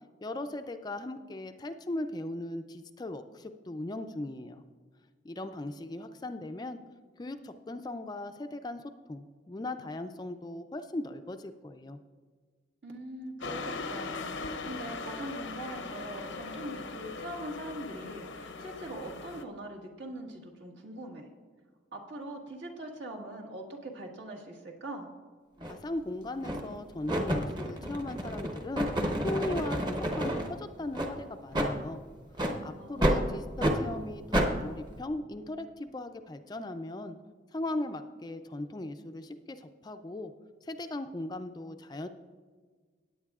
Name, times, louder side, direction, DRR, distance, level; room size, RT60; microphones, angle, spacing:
voice 1, 0.2-4.6 5.2-6.8 7.2-12.0 25.7-28.9 29.2-32.0 32.6-37.2 37.5-40.3 40.6-42.1, left 2 dB, 20° left, 8 dB, 0.4 m, -38 dB
voice 2, 12.8-21.3 21.9-25.1 32.8-33.4, right 1 dB, 70° right, 0 dB, 1.6 m, -42 dB
sound 1, 13.4-19.4, left 4 dB, 85° left, 0.7 m, -39 dB
sound 2, 25.6-25.8 26.4-26.7 27.1-30.5 30.9-31.1 31.5-31.7 32.3-32.6 33.0-33.2 33.6-33.8 34.3-34.5, equal, 25° right, 0.9 m, -29 dB
17.5 x 9.0 x 2.4 m, 1.5 s
head